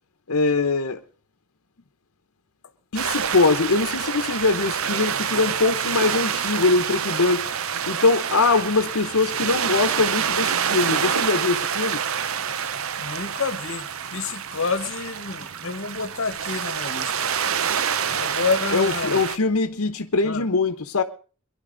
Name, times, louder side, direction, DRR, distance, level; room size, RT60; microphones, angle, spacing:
voice 1, 0.3-1.0 2.9-7.4 7.9-12.0 18.7-21.0, left 3 dB, 85° left, 1.0 m, -22 dB
sound 1, 2.9-19.4, right 7 dB, 70° right, 0.7 m, -27 dB
voice 2, 13.0-17.1 18.2-19.2 20.2-20.5, left 4 dB, 60° left, 1.2 m, -28 dB
23.0 x 11.5 x 3.9 m
head